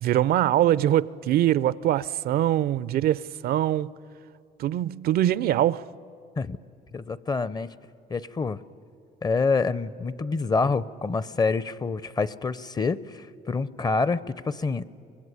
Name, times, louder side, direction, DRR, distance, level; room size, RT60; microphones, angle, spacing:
voice 1, 0.0-3.9 4.6-5.8, right 12 dB, 65° right, 0.5 m, -23 dB
voice 2, 6.9-7.7 8.1-8.6 9.2-14.8, left 4 dB, 25° left, 0.6 m, -27 dB
25.0 x 20.0 x 9.8 m
cardioid pair, 110°, 17 cm